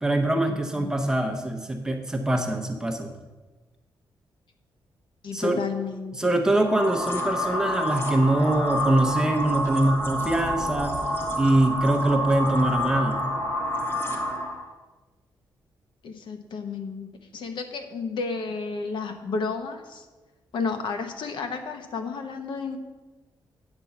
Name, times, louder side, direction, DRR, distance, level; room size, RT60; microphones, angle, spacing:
voice 1, 0.0-3.1 5.3-5.6 6.2-11.0 11.3-13.2, right 1 dB, 10° right, 3 dB, 0.9 m, -23 dB
voice 2, 5.2-6.4 16.0-20.1 20.5-22.8, left 4 dB, 70° left, 6 dB, 1.0 m, -32 dB
sound 1, 6.6-14.7, equal, 25° left, 1.3 m, -28 dB
9.0 x 5.3 x 7.1 m, 1.2 s
wide cardioid pair, 160°, 8 cm